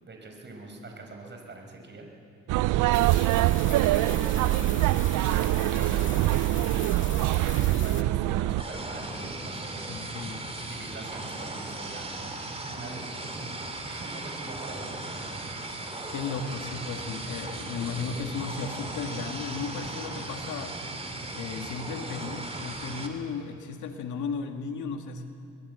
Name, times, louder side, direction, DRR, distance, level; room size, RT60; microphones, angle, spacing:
voice 1, 0.0-2.1 3.7-6.5 7.1-10.0 10.3-12.4 12.7-13.2 13.8-15.4, right 2 dB, 35° right, 2 dB, 5.5 m, -43 dB
sound 1, 2.5-8.6, right 17 dB, 80° right, 0.5 m, -24 dB
sound 2, 2.9-8.0, left 8 dB, 40° left, 0.8 m, -41 dB
sound 3, 8.6-23.1, right 2 dB, 20° right, 3.0 m, -37 dB
voice 2, 9.9-10.4 16.1-20.8 21.3-25.3, left 5 dB, 75° left, 5 dB, 2.0 m, -35 dB
22.0 x 21.0 x 8.2 m, 2.4 s
cardioid pair, 90°, 30 cm